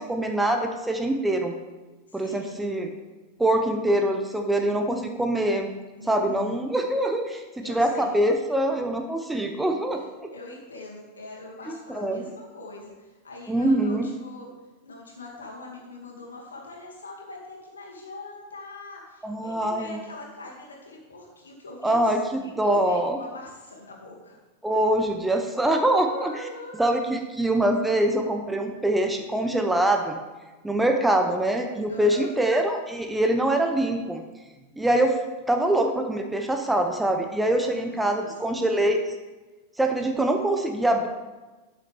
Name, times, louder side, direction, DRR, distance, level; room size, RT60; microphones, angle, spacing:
voice 1, 0.0-1.5 2.1-2.9 3.4-5.7 6.0-10.3 11.7-12.2 13.5-14.1 19.2-20.0 21.8-23.2 24.6-26.3 26.8-30.2 30.6-34.2 34.8-35.2 35.5-39.0 39.8-41.1, right 1 dB, 5° right, 4 dB, 0.9 m, -24 dB
voice 2, 2.1-2.8 6.0-6.6 7.6-8.1 9.9-10.0 10.3-14.5 14.8-22.1 22.4-24.4 26.1-26.8 31.9-32.4 37.5-38.6, left 2 dB, 70° left, -2 dB, 2.5 m, -43 dB
12.5 x 7.6 x 3.6 m, 1.2 s
figure-of-eight pair, 90°, 0 cm